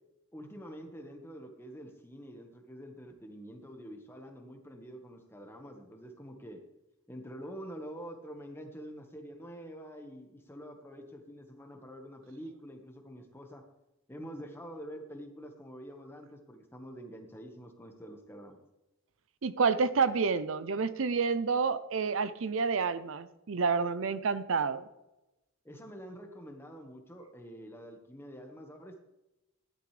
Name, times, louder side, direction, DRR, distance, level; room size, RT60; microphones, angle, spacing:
voice 1, 0.3-6.6 7.1-13.6 14.1-18.6 25.6-29.0, equal, 10° left, 3 dB, 1.4 m, -46 dB
voice 2, 19.4-24.9, right 5 dB, 70° right, 14 dB, 0.6 m, -29 dB
14.5 x 11.5 x 3.3 m, 0.99 s
head